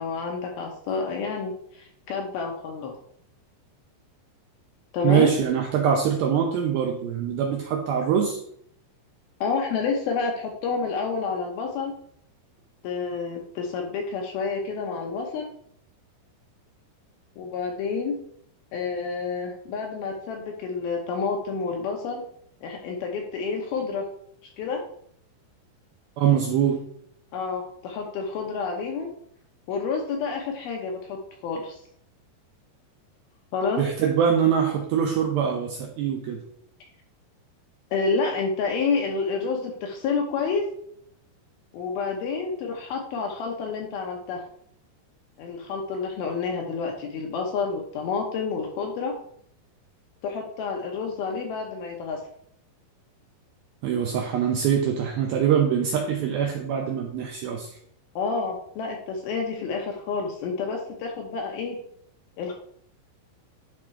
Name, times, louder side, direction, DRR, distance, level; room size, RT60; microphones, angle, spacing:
voice 1, 0.0-2.9 4.9-5.3 9.4-11.9 12.8-15.5 17.4-18.2 18.7-22.2 22.6-24.0 24.6-24.8 27.3-29.1 29.7-31.8 33.5-33.8 37.9-40.6 41.7-44.4 45.4-49.1 50.2-52.2 58.2-61.8 62.4-62.5, left 5 dB, 75° left, 1 dB, 2.4 m, -29 dB
voice 2, 5.0-8.4 26.2-26.8 33.8-36.4 53.8-57.7, right 8 dB, 80° right, 2 dB, 2.2 m, -23 dB
11.0 x 3.6 x 4.4 m, 0.68 s
omnidirectional pair, 5.1 m